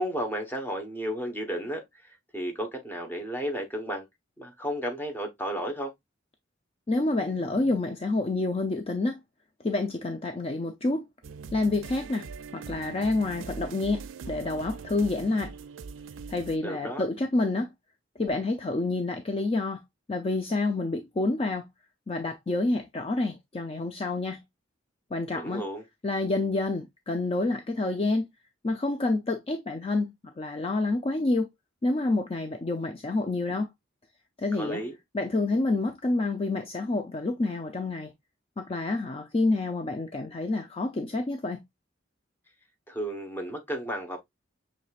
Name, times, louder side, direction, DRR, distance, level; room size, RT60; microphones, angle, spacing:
voice 1, 0.0-4.1 4.4-5.9 16.6-17.0 25.3-25.8 34.5-35.0 42.9-44.2, equal, 10° left, 1.0 m, -33 dB
voice 2, 6.9-9.2 9.6-11.1 11.5-12.3 12.5-15.5 16.3-17.7 18.2-19.8 20.1-21.7 22.1-24.4 25.1-25.6 26.0-28.3 28.6-31.5 31.8-33.7 34.4-34.8 35.1-38.1 38.6-41.6, left 2 dB, 30° left, 0.5 m, -28 dB
sound 1, 11.2-16.6, right 5 dB, 85° right, 0.4 m, -42 dB
6.4 x 3.2 x 2.4 m
head